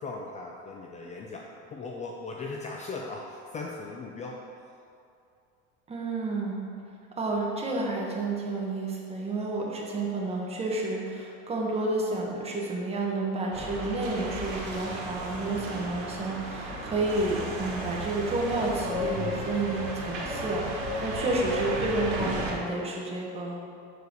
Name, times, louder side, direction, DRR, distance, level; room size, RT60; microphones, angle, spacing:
voice 1, 0.0-4.4, left 3 dB, 25° left, 0 dB, 0.4 m, -38 dB
voice 2, 5.9-6.6 7.2-23.6, right 2 dB, 20° right, -2 dB, 1.1 m, -30 dB
sound 1, 13.5-22.5, right 1 dB, 85° right, 1.3 m, -34 dB
6.3 x 4.7 x 5.2 m, 2.5 s
cardioid pair, 140°, 30 cm